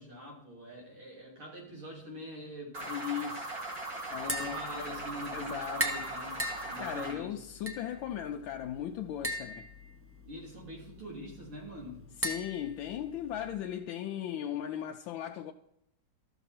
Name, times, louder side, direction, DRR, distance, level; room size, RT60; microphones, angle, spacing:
voice 1, 0.0-2.8 4.2-6.4 6.7-7.4 10.3-12.0, equal, 85° right, 3.9 m, -44 dB
sound 1, 2.7-7.1, right 2 dB, 55° right, 2.9 m, -39 dB
voice 2, 2.8-3.6 4.1-5.0 5.3-5.9 6.8-9.7 12.2-15.5, left 10 dB, 75° left, 1.3 m, -37 dB
Tap, 4.1-13.6, equal, 15° right, 0.5 m, -40 dB
13.5 x 6.8 x 4.3 m
omnidirectional pair, 2.3 m